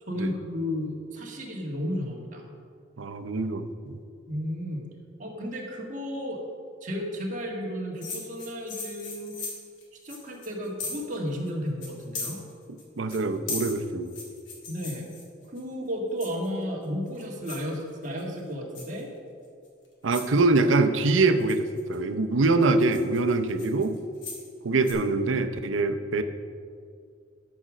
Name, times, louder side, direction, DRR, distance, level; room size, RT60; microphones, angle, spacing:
voice 1, 0.1-2.4 4.3-4.9 5.2-6.4 6.8-9.3 10.0-12.4 14.7-15.1 15.4-19.1, equal, 40° right, -1 dB, 1.7 m, -33 dB
voice 2, 3.0-4.0 13.0-14.1 20.0-24.0 24.6-26.2, right 3 dB, 85° right, 10 dB, 0.6 m, -24 dB
sound 1, 8.0-11.2 11.5-11.6 11.8-12.8 13.1-15.6 16.2-16.6 17.1-17.7 18.0-18.4 18.7-19.0 19.6-19.7 20.1-20.4 21.1-22.0 22.4-24.5 24.8-24.9, left 4 dB, 70° left, 2.2 m, -38 dB
12.5 x 5.1 x 6.2 m, 2.3 s
head